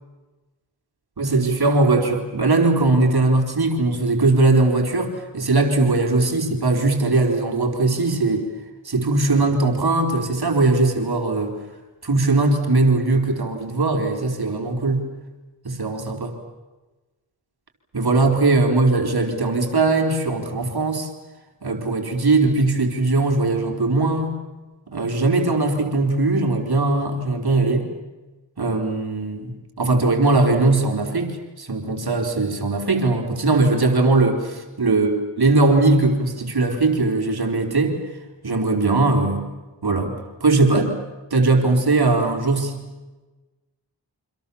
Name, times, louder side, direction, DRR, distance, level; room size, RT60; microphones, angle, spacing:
voice 1, 1.2-8.5 8.8-11.5 12.0-15.0 15.6-16.3 17.9-21.1 21.6-24.4 24.9-27.9 28.6-38.0 38.4-39.5 39.8-40.1 40.4-41.0 41.3-42.8, right 2 dB, 60° right, 3 dB, 4.3 m, -20 dB
29.0 x 26.0 x 7.2 m, 1.2 s
cardioid pair, 45°, 43 cm